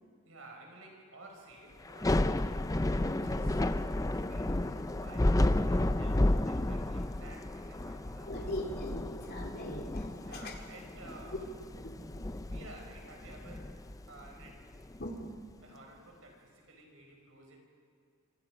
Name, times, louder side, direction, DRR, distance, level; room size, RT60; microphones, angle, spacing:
voice 1, 0.2-2.7 3.1-3.7 4.1-8.5 10.2-11.6 12.4-13.8 14.1-14.7 15.6-17.6, right 2 dB, 65° right, 1 dB, 6.0 m, -53 dB
Thunder / Rain, 1.9-15.0, left 1 dB, 15° left, 0.5 m, -32 dB
voice 2, 8.2-10.5 11.8-12.5 15.0-15.3, left 1 dB, 45° left, 1 dB, 3.5 m, -41 dB
26.5 x 25.5 x 5.2 m, 2.2 s
head